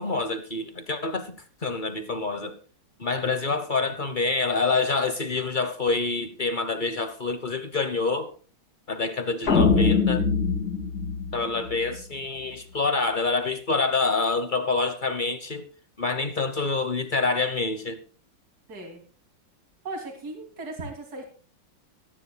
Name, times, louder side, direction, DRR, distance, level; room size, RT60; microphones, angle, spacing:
voice 1, 0.0-2.6 3.0-8.3 8.9-10.3 11.3-15.7 16.0-18.0, left 3 dB, 40° left, 0.8 m, -27 dB
sound 1, 9.5-11.9, left 4 dB, 55° left, 2.6 m, -23 dB
voice 2, 18.7-19.0 19.8-21.2, right 2 dB, 55° right, 3.3 m, -37 dB
22.5 x 9.9 x 2.2 m
omnidirectional pair, 2.0 m